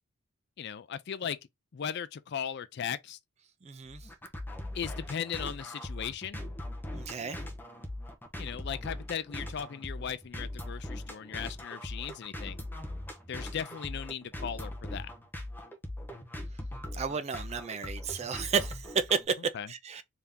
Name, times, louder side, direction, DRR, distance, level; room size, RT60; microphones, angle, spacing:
voice 1, 0.6-1.4 1.7-3.2 4.7-6.4 8.4-12.6 13.3-15.1 19.5-19.7, left 8 dB, 55° left, 0.4 m, -37 dB
voice 2, 3.6-4.1 6.9-7.4 16.9-20.0, right 6 dB, 30° right, 0.4 m, -32 dB
sound 1, 3.9-19.2, left 1 dB, 10° left, 0.7 m, -40 dB
3.5 x 2.8 x 3.5 m
head